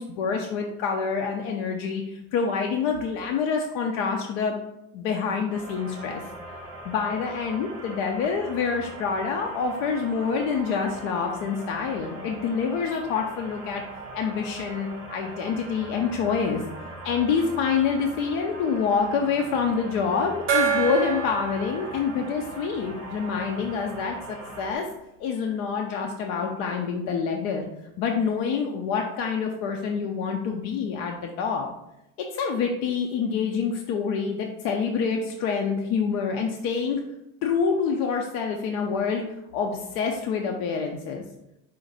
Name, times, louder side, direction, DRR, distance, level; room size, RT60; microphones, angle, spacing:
voice 1, 0.0-4.5 4.9-6.2 6.8-13.8 14.1-16.6 17.0-24.9 25.2-27.7 28.0-31.7 32.3-37.0 37.4-41.2, left 5 dB, 50° left, 2 dB, 0.5 m, -27 dB
sound 1, 5.5-24.7, right 2 dB, ahead, 0.9 m, -41 dB
Gong, 20.5-23.7, right 5 dB, 40° right, 0.7 m, -29 dB
5.0 x 2.5 x 3.9 m, 0.86 s
cardioid pair, 165°, 34 cm